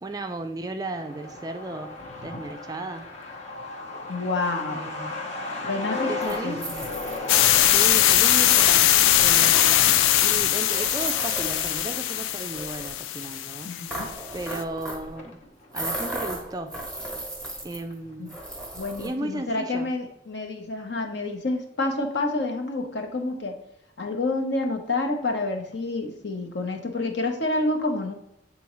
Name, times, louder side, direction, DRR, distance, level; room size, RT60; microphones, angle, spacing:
voice 1, 0.0-3.1 4.7-5.3 6.1-6.6 7.6-14.1 14.3-15.4 15.7-17.1 17.6-18.3 19.0-19.9, right 2 dB, 20° right, 6 dB, 0.3 m, -35 dB
Truck, 0.9-16.1 16.4-16.5 16.7-17.6 17.9-18.0 18.4-18.7, left 3 dB, 35° left, 0.9 m, -37 dB
voice 2, 4.1-4.9 5.6-6.7 13.6-14.1 18.2-18.3 18.7-23.6 24.0-28.1, left 2 dB, 60° left, 3 dB, 0.9 m, -28 dB
sound 1, 6.2-12.2 12.5-13.0 13.9-15.1 15.7-17.9 18.3-19.1, right 1 dB, 5° left, 1.1 m, -35 dB
sound 2, 7.3-14.2, left 12 dB, 85° left, 0.3 m, -21 dB
8.4 x 3.8 x 3.0 m, 0.83 s
head